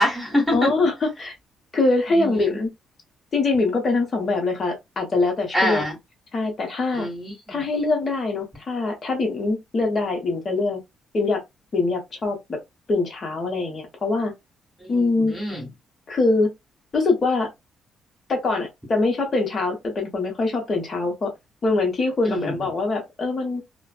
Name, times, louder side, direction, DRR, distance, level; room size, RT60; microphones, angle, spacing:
voice 1, 0.0-0.5 2.1-2.6 5.5-6.0 6.9-7.6 14.8-15.7 22.2-22.6, equal, ahead, 1.6 m, -25 dB
voice 2, 0.5-1.3 1.7-2.7 3.3-5.8 6.3-7.1 7.5-10.8 11.1-11.4 11.7-12.6 12.9-14.3 14.9-15.3 16.1-16.5 16.9-17.5 18.3-21.3 21.6-23.6, left 3 dB, 40° left, 1.1 m, -23 dB
2.5 x 2.5 x 2.3 m
cardioid pair, 90°, 0 cm